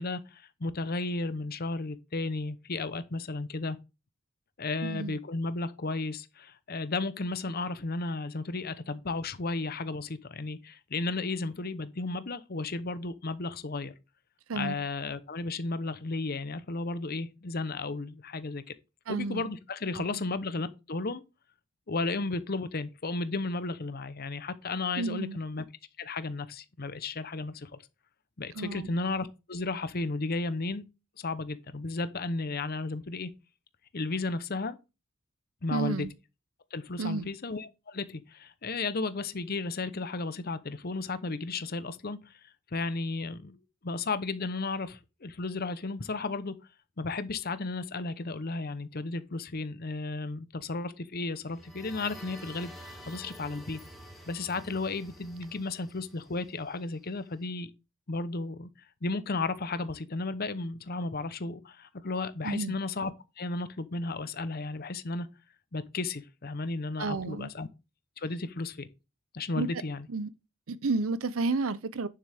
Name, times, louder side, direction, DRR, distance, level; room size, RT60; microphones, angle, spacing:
voice 1, 0.0-3.8 4.6-13.9 14.5-18.6 19.1-21.2 21.9-25.6 26.0-27.8 28.4-30.8 31.2-33.3 33.9-34.8 35.6-36.1 36.7-42.3 42.7-43.6 43.8-46.5 47.0-53.8 54.3-57.7 58.1-58.7 59.0-63.1 63.4-65.3 65.7-67.7 68.2-68.9 69.3-70.1, left 3 dB, 45° left, 0.8 m, -34 dB
voice 2, 4.8-5.2 14.5-14.7 19.1-19.5 20.0-20.2 25.0-25.4 28.5-28.9 35.7-36.1 37.0-37.3 62.4-62.7 67.0-67.5 69.5-69.8 70.1-70.3 70.7-72.1, right 3 dB, 80° right, 0.7 m, -31 dB
sound 1, 51.4-57.1, equal, ahead, 2.3 m, -49 dB
9.3 x 7.3 x 3.5 m
head